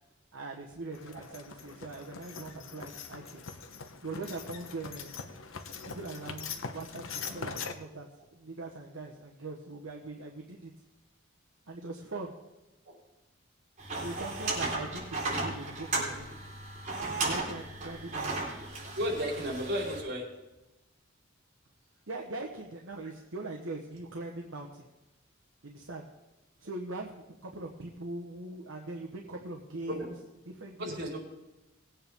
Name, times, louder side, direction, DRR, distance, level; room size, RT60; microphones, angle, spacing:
voice 1, 0.3-3.5 4.0-5.1 5.9-10.7 11.7-12.3 14.0-16.3 17.0-18.5 22.1-24.9 25.6-26.1 26.6-30.1 30.4-31.2, right 2 dB, 80° right, 0 dB, 1.2 m, -41 dB
sound 1, 0.9-7.7, left 5 dB, 80° left, 1.1 m, -42 dB
sound 2, 13.8-20.0, right 2 dB, 40° right, 4.4 m, -35 dB
voice 2, 18.9-20.3 29.9-30.1 30.8-31.2, equal, 60° right, -2 dB, 4.4 m, -33 dB
20.0 x 8.8 x 3.7 m, 1.0 s
head